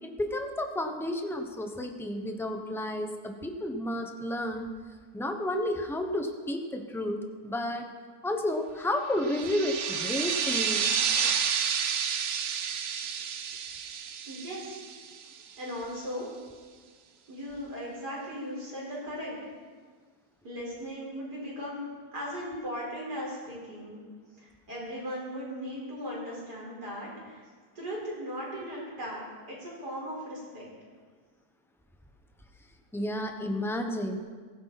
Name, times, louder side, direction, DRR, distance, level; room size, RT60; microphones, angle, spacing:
voice 1, 0.0-4.7 5.1-7.9 8.2-10.9 32.9-34.2, left 1 dB, ahead, 4 dB, 0.9 m, -31 dB
sound 1, 9.2-15.5, right 7 dB, 55° right, 1.0 m, -30 dB
voice 2, 14.3-14.8 15.6-16.3 17.3-19.4 20.4-21.9 22.1-24.0 24.4-27.4 27.8-29.2 29.5-30.7, equal, 85° right, -4 dB, 5.3 m, -37 dB
17.0 x 14.5 x 4.2 m, 1.5 s
omnidirectional pair, 1.7 m